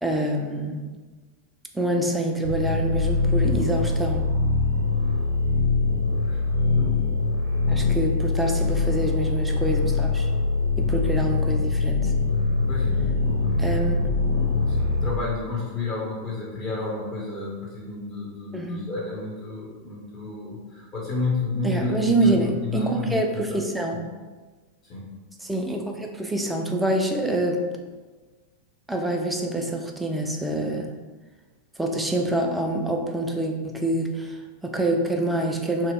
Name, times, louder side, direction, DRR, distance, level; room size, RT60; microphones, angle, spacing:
voice 1, 0.0-0.8 1.7-4.2 7.7-10.3 10.8-12.1 13.6-14.0 18.5-18.9 21.6-24.0 25.4-27.6 28.9-30.9 31.8-35.9, right 1 dB, 5° right, 2 dB, 0.3 m, -26 dB
sound 1, 2.4-15.1, left 3 dB, 60° right, 0.7 m, -23 dB
voice 2, 8.4-9.0 11.1-11.2 12.7-14.0 14.4-23.6 23.9-24.0 24.9-25.1, left 3 dB, 35° left, -5 dB, 0.8 m, -32 dB
2.8 x 2.0 x 3.6 m, 1.3 s
figure-of-eight pair, 90°, 0 cm